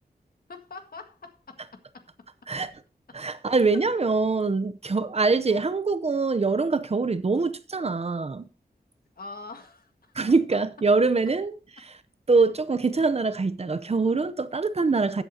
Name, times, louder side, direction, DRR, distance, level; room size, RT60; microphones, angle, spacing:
voice 1, 0.5-2.5 3.1-3.2 3.7-3.8 5.5-5.7 9.2-10.1 10.5-10.6 11.8-11.9, left 3 dB, 70° left, 1.7 m, -44 dB
voice 2, 3.1-8.5 10.1-11.5 12.3-15.2, right 4 dB, 40° right, 0.7 m, -24 dB
13.5 x 8.3 x 2.8 m
wide cardioid pair, 85°, 16 cm